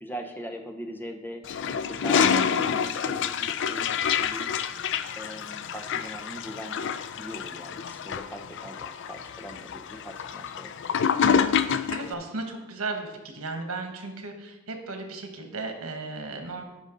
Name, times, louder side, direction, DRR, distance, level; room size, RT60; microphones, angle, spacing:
voice 1, 0.0-1.4 1.9-4.6 5.2-6.9 7.2-10.7, equal, 10° left, 4 dB, 0.8 m, -40 dB
Toilet flush, 1.4-12.1, left 7 dB, 60° left, 0.4 m, -27 dB
voice 2, 2.0-2.9 11.2-16.6, right 3 dB, 90° right, 5 dB, 1.3 m, -35 dB
12.0 x 5.2 x 3.9 m, 1.0 s
head